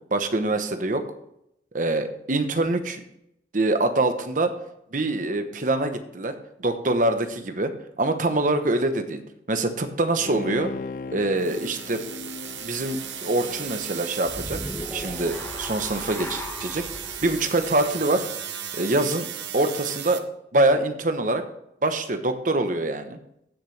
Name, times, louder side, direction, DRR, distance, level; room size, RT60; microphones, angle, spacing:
voice 1, 0.1-1.0 1.7-3.0 3.5-4.5 4.9-7.7 8.0-9.2 9.5-10.7 11.1-12.0 12.6-14.6 14.9-16.8 17.2-18.2 18.7-19.3 19.5-20.2 20.5-21.4 21.8-23.2, right 2 dB, 45° right, 8 dB, 1.0 m, -24 dB
Bowed string instrument, 10.2-14.8 15.2-15.3, left 4 dB, 45° left, 0.4 m, -38 dB
sound 1, 11.4-20.2, right 10 dB, 80° right, 0.9 m, -36 dB
sound 2, 14.2-18.6, left 1 dB, 15° left, 1.2 m, -37 dB
15.5 x 6.7 x 3.4 m, 0.78 s
head